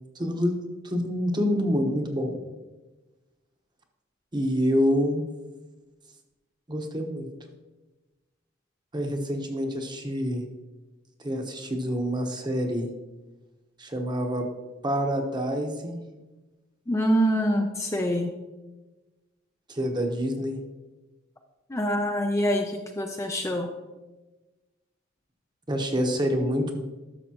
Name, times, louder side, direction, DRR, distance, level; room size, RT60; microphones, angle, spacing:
voice 1, 0.1-0.5 0.8-2.4 4.3-5.2 6.7-7.3 8.9-10.4 11.2-12.9 13.8-14.4 14.8-16.0 19.7-20.5 25.7-26.8, equal, 25° right, 3 dB, 1.0 m, -27 dB
voice 2, 16.9-18.3 21.7-23.7, equal, 15° left, 3 dB, 0.5 m, -25 dB
12.0 x 6.7 x 2.9 m, 1.2 s
head